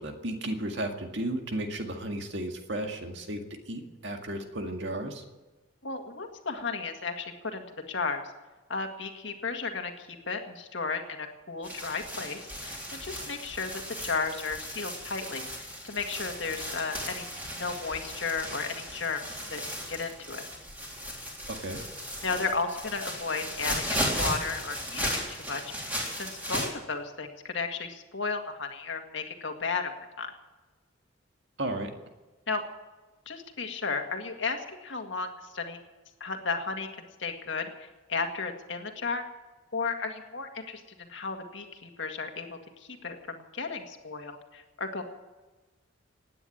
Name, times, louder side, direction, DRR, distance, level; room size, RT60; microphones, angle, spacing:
voice 1, 0.0-3.4 3.7-5.2 21.5-21.8 31.6-31.9, right 1 dB, 60° right, 4 dB, 2.0 m, -34 dB
voice 2, 5.8-8.2 8.7-17.3 17.6-19.2 19.5-20.4 22.2-25.9 26.2-30.3 32.5-32.6 33.3-35.3 35.5-35.8 36.2-36.9 37.2-39.2 39.7-42.6 43.0-45.0, left 4 dB, 65° left, 4 dB, 1.9 m, -34 dB
sound 1, 11.6-26.7, equal, 10° right, 3.5 m, -36 dB
17.0 x 9.8 x 8.7 m, 1.2 s
head